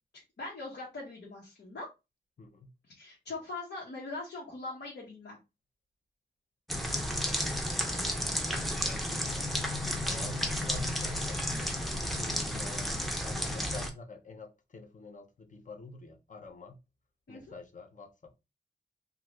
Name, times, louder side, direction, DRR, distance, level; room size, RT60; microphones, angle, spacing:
voice 1, 0.4-1.9 2.9-5.4 17.3-17.6, left 3 dB, 80° left, 1.1 m, -41 dB
voice 2, 2.4-2.7 8.8-9.2 10.1-11.5 12.0-16.8 17.3-18.4, left 2 dB, 45° left, 0.6 m, -47 dB
sound 1, 6.7-13.9, equal, ahead, 0.5 m, -32 dB
2.7 x 2.4 x 3.1 m
wide cardioid pair, 120°, 18 cm